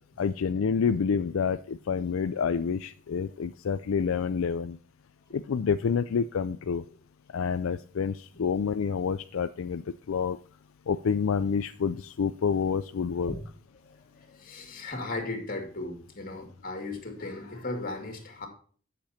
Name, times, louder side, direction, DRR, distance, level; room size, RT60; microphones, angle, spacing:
voice 1, 0.2-4.8 5.3-6.8 7.3-9.8 10.1-10.4 10.9-13.3, left 6 dB, 75° left, 11 dB, 0.4 m, -28 dB
voice 2, 13.9-18.5, left 2 dB, 45° left, 3 dB, 2.5 m, -37 dB
10.5 x 6.8 x 4.3 m, 0.43 s
head